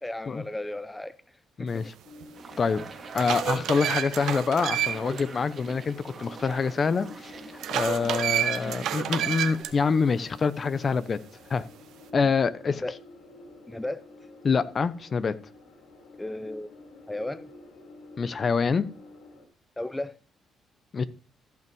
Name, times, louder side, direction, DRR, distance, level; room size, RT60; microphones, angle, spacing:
voice 1, 0.0-1.9 8.1-8.3 12.7-13.0 13.7-14.0 16.2-16.7 17.1-17.5 19.8-20.2, left 1 dB, 10° left, 0.5 m, -35 dB
voice 2, 1.6-1.9 2.6-2.8 3.1-7.3 7.7-11.2 11.5-11.6 12.1-12.8 14.4-15.3 18.2-18.9 20.9-21.0, left 5 dB, 40° left, 0.8 m, -26 dB
sound 1, 2.0-19.5, left 2 dB, 85° left, 3.9 m, -50 dB
sound 2, 2.2-2.3 2.8-5.2 5.6-5.7 7.6-9.7, right 10 dB, 80° right, 1.0 m, -29 dB
sound 3, 2.3-9.6, right 4 dB, 40° right, 2.1 m, -44 dB
14.0 x 5.6 x 5.4 m
cardioid pair, 90°, 0 cm